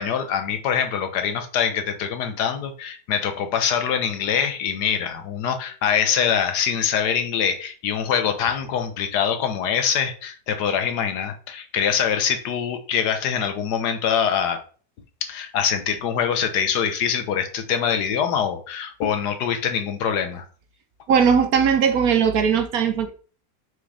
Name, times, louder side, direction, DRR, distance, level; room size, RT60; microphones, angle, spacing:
voice 1, 0.0-14.6 15.2-20.5, left 7 dB, 75° left, 1.5 m, -24 dB
voice 2, 21.1-23.1, right 7 dB, 65° right, 1.2 m, -19 dB
5.9 x 4.8 x 3.3 m
omnidirectional pair, 1.8 m